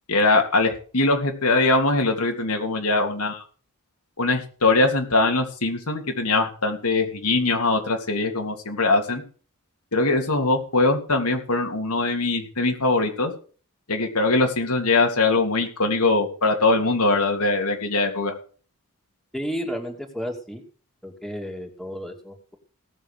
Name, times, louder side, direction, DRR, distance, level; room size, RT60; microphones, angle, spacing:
voice 1, 0.1-3.4 4.2-9.2 9.9-13.3 13.9-18.3, left 3 dB, 85° left, 3 dB, 3.3 m, -22 dB
voice 2, 19.3-20.6 21.0-22.6, equal, ahead, 1 dB, 2.6 m, -32 dB
18.0 x 7.0 x 6.8 m, 0.40 s
head